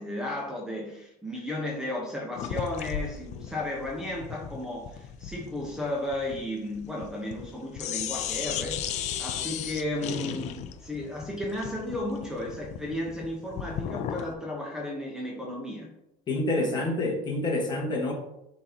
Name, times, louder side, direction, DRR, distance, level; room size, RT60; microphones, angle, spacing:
voice 1, 0.0-8.9 9.2-15.9 16.5-16.8, left 1 dB, 5° right, -3 dB, 1.1 m, -34 dB
sound 1, 2.4-7.5 7.8-14.3, left 9 dB, 45° left, 0.5 m, -35 dB
voice 2, 16.3-18.1, left 2 dB, 25° left, -1 dB, 1.7 m, -27 dB
10.5 x 3.8 x 3.0 m, 0.84 s
cardioid pair, 150°, 16 cm